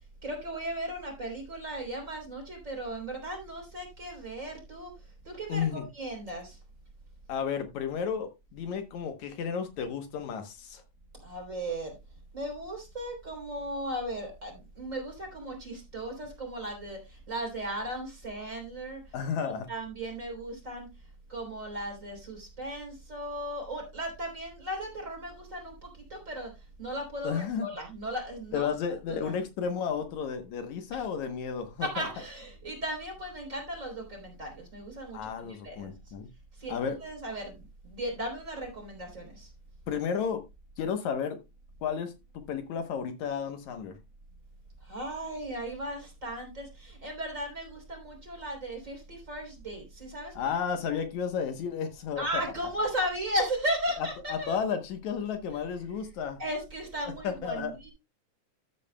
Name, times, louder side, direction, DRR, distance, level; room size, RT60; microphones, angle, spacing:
voice 1, 0.2-4.9 5.2-6.6 11.2-11.9 12.3-19.1 19.7-20.9 21.3-26.5 26.8-28.7 29.1-29.3 30.9-31.0 31.8-35.9 36.6-39.5 44.8-50.5 50.9-51.0 52.2-54.6 56.4-57.9, right 1 dB, 25° right, 1 dB, 3.8 m, -36 dB
voice 2, 5.5-5.9 7.3-10.8 19.1-19.7 27.2-27.7 28.5-32.1 35.1-36.3 36.7-37.0 39.9-40.4 40.8-41.4 41.8-42.1 42.5-44.0 50.3-52.4 54.0-56.4 57.2-57.7, left 7 dB, 75° left, 7 dB, 2.4 m, -32 dB
13.5 x 8.1 x 2.2 m, 0.24 s
omnidirectional pair, 3.4 m